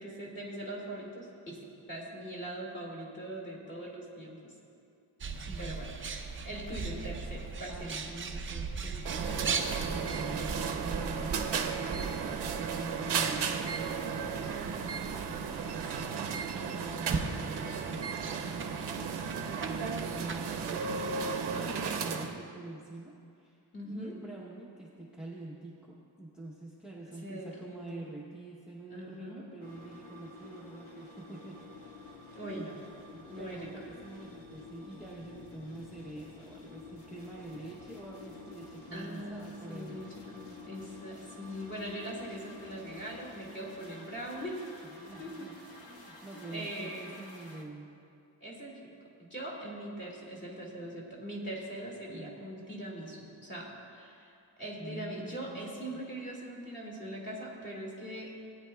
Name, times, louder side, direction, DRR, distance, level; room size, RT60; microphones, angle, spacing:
voice 1, 0.0-4.5 5.6-8.0 15.9-16.1 21.5-22.3 23.7-24.2 27.2-28.1 28.9-29.5 32.3-32.8 33.1-33.7 38.9-40.1 40.3-44.6 45.2-45.5 46.3-47.1 48.4-48.9 49.2-58.3, right 1 dB, 25° left, -3 dB, 2.0 m, -41 dB
Bird, 5.2-22.0, right 4 dB, 30° right, 0.5 m, -40 dB
voice 2, 5.4-5.8 7.7-15.6 16.5-31.6 32.4-32.7 33.4-40.0 44.8-47.9 52.1-52.3 54.8-56.0, right 2 dB, ahead, -5 dB, 0.8 m, -46 dB
sound 1, 9.1-22.3, right 6 dB, 70° right, 0.8 m, -34 dB
sound 2, 29.6-47.6, left 3 dB, 80° left, 1.5 m, -50 dB
18.5 x 9.8 x 2.3 m, 2.5 s
wide cardioid pair, 165°, 42 cm